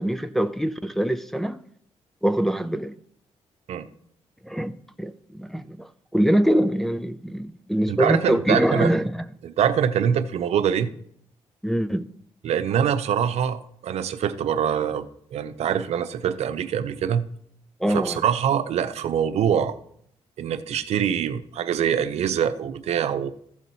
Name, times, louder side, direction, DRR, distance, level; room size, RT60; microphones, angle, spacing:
voice 1, 0.0-1.6 2.2-2.9 4.4-4.7 5.0-9.2 11.6-12.1 17.8-18.2, right 1 dB, 5° left, 0.4 m, -23 dB
voice 2, 7.9-8.9 9.4-10.9 12.4-17.3 17.9-19.8 20.4-23.3, right 8 dB, 75° right, 0.6 m, -24 dB
15.0 x 5.9 x 4.1 m
cardioid pair, 110°, 11 cm